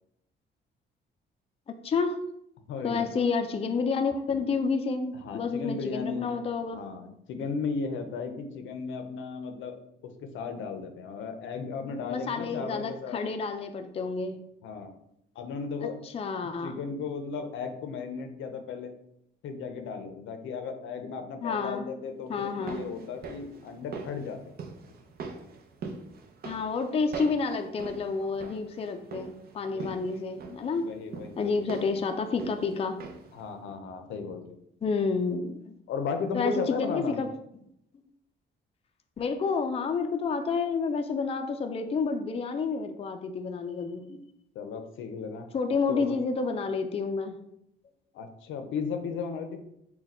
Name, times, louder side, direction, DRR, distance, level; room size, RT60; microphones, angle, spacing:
voice 1, 1.7-2.2 2.8-6.8 12.1-14.4 15.8-16.8 21.4-21.9 22.3-22.8 26.4-30.9 31.4-33.0 34.8-35.8 36.3-36.5 36.8-37.3 39.2-44.2 45.5-47.4, left 4 dB, 30° left, 5 dB, 0.4 m, -30 dB
voice 2, 2.7-3.1 5.2-6.3 6.7-9.8 10.0-13.2 14.6-14.9 15.4-16.0 16.6-18.9 19.4-24.4 28.2-28.3 29.7-30.0 30.8-31.6 33.3-34.6 35.9-37.2 44.5-45.5 45.9-46.1 48.1-49.6, left 5 dB, 75° left, 7 dB, 0.6 m, -35 dB
sound 1, 22.4-33.4 33.7-33.8, right 4 dB, 50° right, 0.6 m, -43 dB
4.1 x 2.2 x 4.1 m, 0.76 s
cardioid pair, 90°, 20 cm